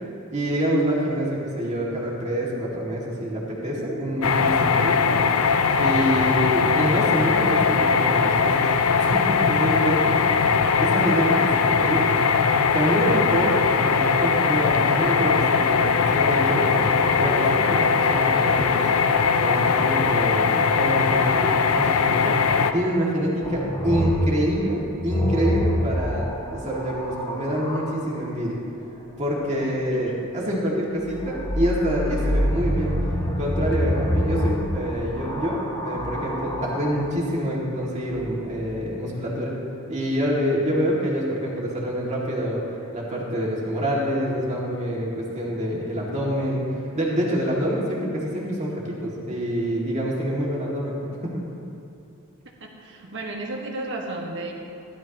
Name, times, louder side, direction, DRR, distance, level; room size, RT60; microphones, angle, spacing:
voice 1, 0.3-5.1 5.8-8.7 9.0-10.3 10.8-12.1 12.7-18.9 19.4-22.4 22.7-26.3 26.5-28.6 29.2-33.0 33.4-39.6 39.9-42.6 42.9-46.6 46.9-51.4, equal, 30° right, -5 dB, 2.3 m, -26 dB
sound 1, 4.2-22.7, left 5 dB, 70° left, 0.6 m, -20 dB
voice 2, 10.3-10.8 11.6-11.7 29.9-30.2 52.6-54.5, right 2 dB, 55° right, 0 dB, 1.5 m, -34 dB
sound 2, 23.4-28.0 31.0-37.1 38.1-38.7, equal, 25° left, 1.0 m, -26 dB
16.0 x 12.0 x 3.0 m, 2.7 s
head